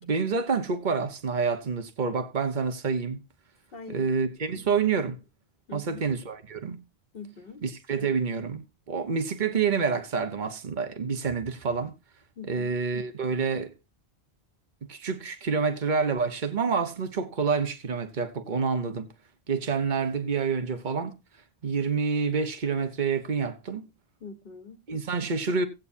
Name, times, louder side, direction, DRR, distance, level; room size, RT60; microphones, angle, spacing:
voice 1, 0.0-3.2 3.9-5.2 5.7-6.8 7.6-11.9 12.5-13.7 14.9-19.1 19.5-21.2 21.6-23.9 24.9-25.7, right 5 dB, 50° right, 1.3 m, -28 dB
voice 2, 3.7-4.2 4.5-4.6 5.7-6.0 7.1-7.6 12.4-12.8 24.2-24.8, left 4 dB, 60° left, 1.5 m, -43 dB
17.0 x 8.5 x 2.7 m
omnidirectional pair, 1.1 m